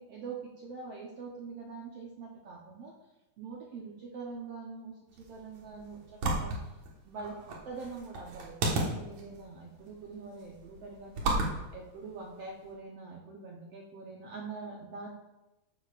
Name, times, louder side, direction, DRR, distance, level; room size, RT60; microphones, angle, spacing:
voice 1, 0.0-2.9 3.4-6.8 7.0-15.1, right 4 dB, 85° right, -2 dB, 1.3 m, -44 dB
sound 1, 5.1-12.7, right 2 dB, 55° right, 2.4 m, -36 dB
14.0 x 9.8 x 2.5 m, 1.0 s
omnidirectional pair, 4.3 m